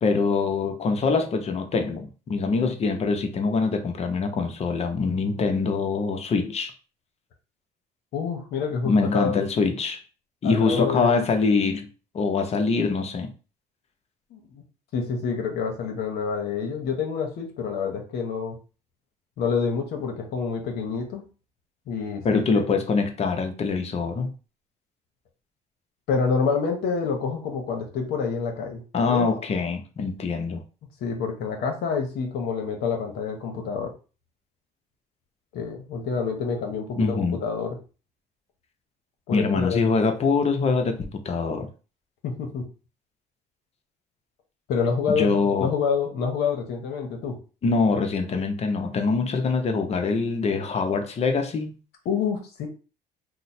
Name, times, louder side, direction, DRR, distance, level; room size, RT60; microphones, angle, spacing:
voice 1, 0.0-6.7 8.8-10.0 10.4-11.9 12.1-13.3 22.2-24.3 28.9-30.6 37.0-37.4 39.3-41.7 45.1-45.7 47.6-51.7, left 4 dB, 40° left, 0.7 m, -24 dB
voice 2, 8.1-9.4 10.4-11.2 14.3-14.6 14.9-18.6 19.4-21.2 21.9-22.4 26.1-28.8 29.1-29.3 31.0-33.9 35.5-37.7 39.3-39.8 42.2-42.6 44.7-47.4 52.0-52.7, left 5 dB, 75° left, 0.8 m, -27 dB
3.0 x 2.1 x 4.1 m
cardioid pair, 110°, 17 cm